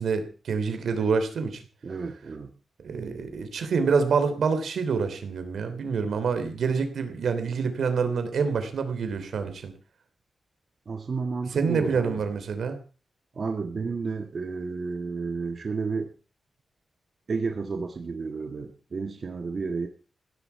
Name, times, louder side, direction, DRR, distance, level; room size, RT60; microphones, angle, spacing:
voice 1, 0.0-1.6 2.8-9.7 11.5-12.8, right 5 dB, 85° right, 9 dB, 3.1 m, -27 dB
voice 2, 1.8-2.5 10.9-12.2 13.3-16.1 17.3-19.9, right 4 dB, 50° right, 6 dB, 1.5 m, -31 dB
16.0 x 14.0 x 4.7 m, 0.37 s
wide cardioid pair, 130°, 0 cm